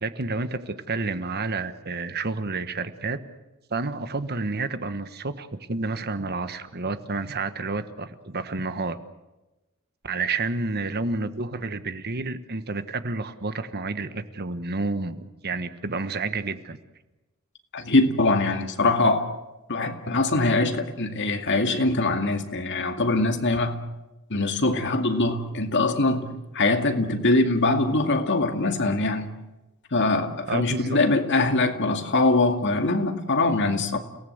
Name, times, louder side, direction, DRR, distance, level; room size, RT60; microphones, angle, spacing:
voice 1, 0.0-3.2 3.7-9.0 10.0-16.8 30.5-31.0, right 3 dB, 45° right, 1.3 m, -30 dB
voice 2, 17.7-19.3 19.7-23.8 24.3-29.3 29.9-34.0, left 2 dB, 55° left, 2.2 m, -23 dB
30.0 x 18.0 x 8.0 m
head